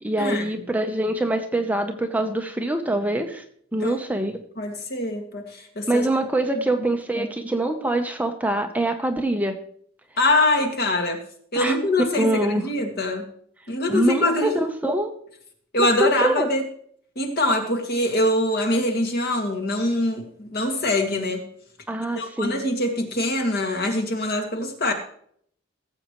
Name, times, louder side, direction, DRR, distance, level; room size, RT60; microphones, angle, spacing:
voice 1, 0.0-3.4 3.7-4.4 5.9-9.6 11.5-11.8 12.2-12.6 13.9-15.1 15.8-16.5 21.9-22.6, right 1 dB, 10° right, 5 dB, 0.8 m, -24 dB
voice 2, 4.6-6.1 7.2-7.3 10.2-11.2 11.5-13.3 13.7-14.6 15.7-16.6 17.2-21.4 22.2-24.9, left 1 dB, 50° left, 3 dB, 2.0 m, -24 dB
18.0 x 7.8 x 3.1 m, 0.63 s
head